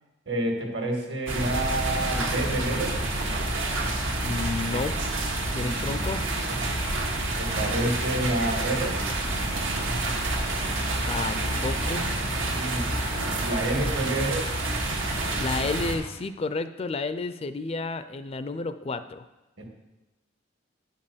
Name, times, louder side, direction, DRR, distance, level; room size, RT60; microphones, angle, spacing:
voice 1, 0.3-3.0 5.6-6.0 7.4-9.0 12.5-12.9 13.3-14.5 19.6-19.7, right 1 dB, 65° right, 2 dB, 1.9 m, -29 dB
sound 1, 1.3-15.9, right 2 dB, 80° right, 1.6 m, -28 dB
voice 2, 4.2-5.0 5.5-6.2 11.1-12.1 15.4-19.3, left 3 dB, 30° left, 11 dB, 0.4 m, -31 dB
10.0 x 5.4 x 6.8 m, 1.1 s
head